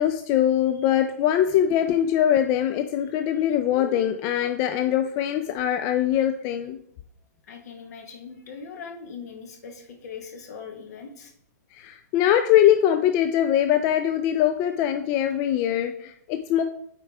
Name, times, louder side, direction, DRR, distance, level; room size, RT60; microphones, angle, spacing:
voice 1, 0.0-6.8 11.7-16.6, left 11 dB, 30° left, 8 dB, 0.4 m, -22 dB
voice 2, 7.5-11.3, left 6 dB, 60° left, 3 dB, 1.6 m, -40 dB
9.4 x 4.6 x 3.5 m, 0.71 s
hypercardioid pair, 135°, 10 cm